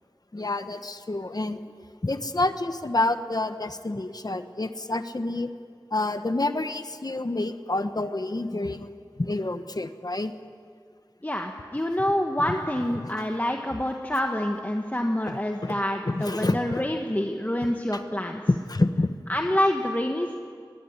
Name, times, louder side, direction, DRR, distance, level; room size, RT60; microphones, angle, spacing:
voice 1, 0.3-1.6 2.0-5.5 5.9-10.3 12.9-13.1 15.3-15.8 16.0-16.8 17.9-18.0 18.5-19.1, left 2 dB, 55° left, 9 dB, 1.3 m, -28 dB
voice 2, 11.2-18.4 19.3-20.3, left 1 dB, 20° left, 2 dB, 1.6 m, -27 dB
22.5 x 19.5 x 9.8 m, 2.2 s
wide cardioid pair, 50°, 8 cm